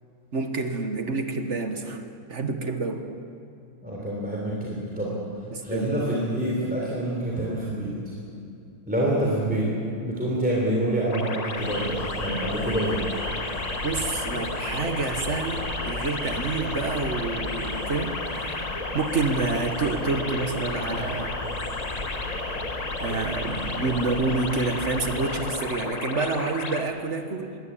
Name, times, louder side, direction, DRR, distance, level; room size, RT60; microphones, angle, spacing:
voice 1, 0.3-2.0 2.3-3.0 5.5-5.9 13.8-18.7 18.9-21.4 23.0-27.6, right 3 dB, 40° right, 6 dB, 1.4 m, -28 dB
voice 2, 3.8-5.2 5.6-7.9 8.9-9.7 10.0-13.0, right 1 dB, 5° right, -5 dB, 3.6 m, -27 dB
sound 1, 11.1-26.8, left 3 dB, 30° left, 0.8 m, -33 dB
sound 2, 11.5-25.3, left 1 dB, 65° left, 6.5 m, -36 dB
21.5 x 16.5 x 8.7 m, 2.5 s
omnidirectional pair, 2.2 m